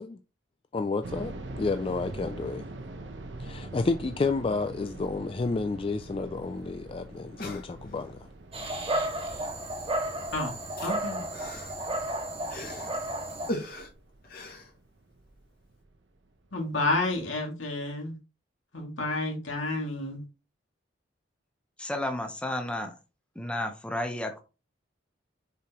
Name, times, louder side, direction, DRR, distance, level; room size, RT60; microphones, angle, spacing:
voice 1, 0.7-2.6 3.4-8.3, left 3 dB, 30° left, 0.3 m, -30 dB
sound 1, 1.0-15.9 16.2-16.3 16.9-17.2, right 2 dB, 70° right, 0.9 m, -44 dB
sound 2, 6.5-6.6 6.7-6.8 7.2-8.2 9.3-9.5 9.8-13.0 13.5-15.3 15.7-15.8, left 1 dB, 50° left, 2.1 m, -40 dB
Dog, 8.5-13.5, right 1 dB, 30° right, 1.4 m, -33 dB
voice 2, 10.8-11.2 16.5-18.2 18.7-20.2, left 2 dB, 85° left, 2.3 m, -30 dB
voice 3, 21.8-22.9 23.4-24.4, left 1 dB, 5° left, 0.8 m, -32 dB
6.9 x 4.7 x 3.0 m
head